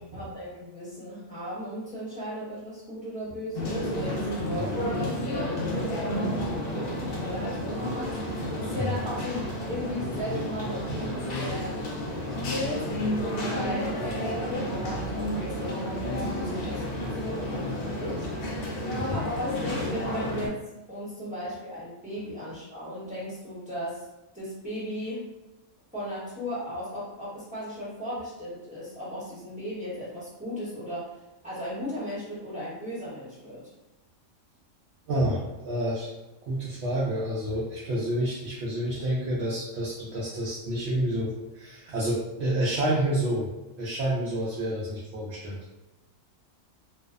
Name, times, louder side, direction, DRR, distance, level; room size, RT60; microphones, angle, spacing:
voice 1, 0.1-12.0 12.3-12.9 13.4-18.3 19.1-20.6 20.9-24.1 24.3-25.3 25.9-31.1 31.4-33.7, equal, 5° right, -10 dB, 0.8 m, -36 dB
sound 1, 3.5-20.5, left 1 dB, 60° left, 0.6 m, -31 dB
voice 2, 35.1-36.1 36.5-43.5 43.8-45.6, right 1 dB, 65° right, -6 dB, 0.7 m, -29 dB
2.6 x 2.0 x 2.4 m, 1.0 s
omnidirectional pair, 1.4 m